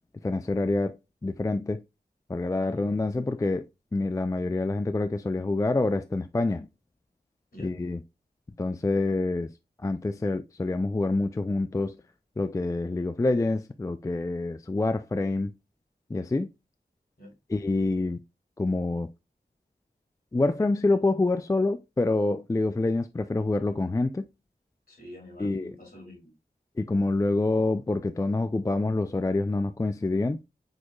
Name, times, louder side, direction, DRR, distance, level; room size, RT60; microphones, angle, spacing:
voice 1, 0.2-1.0 1.2-1.8 2.3-3.7 3.9-6.7 7.6-8.0 8.6-9.5 9.8-11.9 12.4-15.5 16.1-16.5 17.5-18.2 18.6-19.1 20.3-24.2 25.4-25.7 26.8-30.4, left 2 dB, 20° left, 0.3 m, -26 dB
voice 2, 24.9-26.3, left 1 dB, 60° left, 2.7 m, -46 dB
6.4 x 3.0 x 2.3 m
wide cardioid pair, 40°, 17 cm